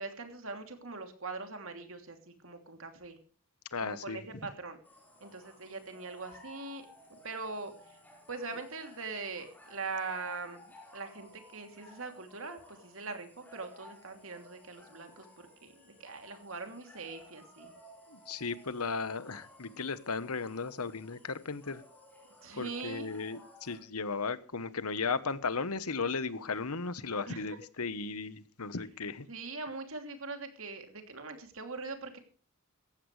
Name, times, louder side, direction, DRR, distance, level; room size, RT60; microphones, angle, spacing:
voice 1, 0.0-3.2 3.8-4.8 5.2-8.0 8.3-17.7 22.4-23.1 27.3-27.6 29.3-32.2, right 4 dB, 65° right, 3.0 m, -42 dB
voice 2, 3.7-4.2 18.1-21.8 22.5-29.3, left 4 dB, 90° left, 1.2 m, -36 dB
sound 1, 4.8-23.8, left 1 dB, 10° left, 4.8 m, -57 dB
17.5 x 14.5 x 3.3 m
head